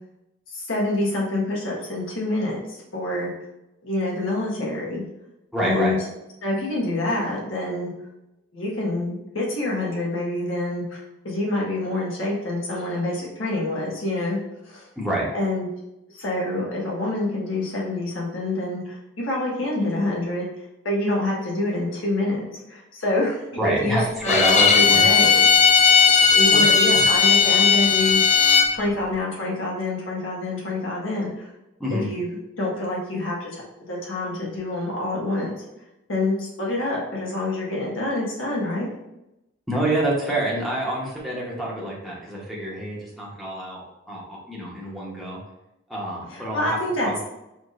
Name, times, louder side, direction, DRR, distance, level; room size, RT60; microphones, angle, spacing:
voice 1, 0.5-3.3 3.8-5.0 5.6-6.0 6.4-7.9 8.5-14.4 14.6-14.9 15.3-15.7 16.1-20.5 20.8-25.4 26.3-28.4 28.7-31.5 31.9-33.6 33.9-35.5 36.1-38.9 46.3-47.2, left 2 dB, 80° left, -4 dB, 1.4 m, -27 dB
voice 2, 5.5-5.9 15.0-15.3 23.6-24.0 24.3-25.0 26.5-27.0 31.8-32.0 39.7-43.8 44.1-45.4 45.9-46.8 47.0-47.2, right 1 dB, ahead, -5 dB, 1.0 m, -26 dB
Bowed string instrument, 24.2-28.7, left 6 dB, 35° left, 0.5 m, -16 dB
5.0 x 3.4 x 2.5 m, 0.91 s
head